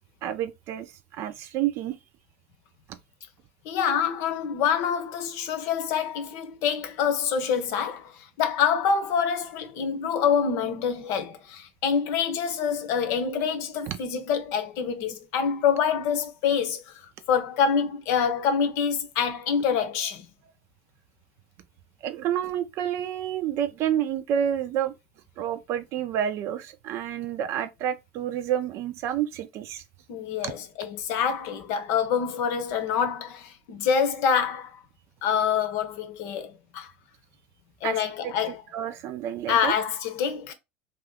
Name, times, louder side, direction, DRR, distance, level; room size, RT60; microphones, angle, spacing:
voice 1, 0.2-2.0 13.9-14.0 22.0-24.9 25.4-29.8 30.4-30.5 37.8-39.8, right 10 dB, 55° right, 0.5 m, -29 dB
voice 2, 3.6-8.1 8.4-16.9 17.3-20.3 30.1-34.7 35.2-36.9 37.8-38.6 39.5-40.5, left 7 dB, 60° left, 0.7 m, -26 dB
2.7 x 2.4 x 3.5 m
hypercardioid pair, 95°, 6 cm